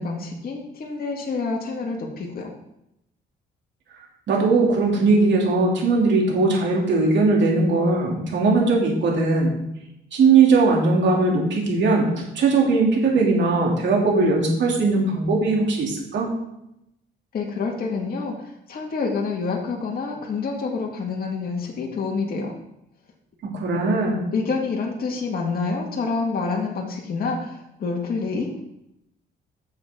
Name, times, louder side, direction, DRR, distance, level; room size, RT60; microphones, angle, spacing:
voice 1, 0.0-2.5 17.3-22.5 24.3-28.7, left 4 dB, 50° left, -1 dB, 2.0 m, -27 dB
voice 2, 4.3-9.5 10.1-16.3 23.5-24.2, right 3 dB, 65° right, -2 dB, 2.9 m, -19 dB
10.5 x 7.1 x 3.8 m, 0.84 s
cardioid pair, 90°, 20 cm